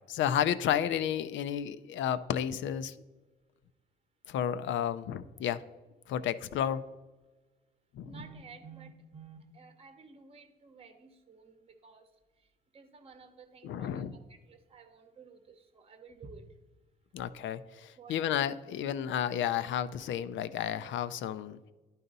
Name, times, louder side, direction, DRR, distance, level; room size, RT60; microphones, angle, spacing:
voice 1, 0.1-3.0 4.3-5.6 6.1-6.8 7.9-8.1 13.6-14.2 17.1-21.7, left 9 dB, 70° left, 14 dB, 0.4 m, -32 dB
voice 2, 8.1-12.1 12.7-16.4 18.0-18.4, right 5 dB, 30° right, 8 dB, 0.8 m, -52 dB
11.0 x 4.0 x 4.0 m, 1.2 s
cardioid pair, 90°, 20 cm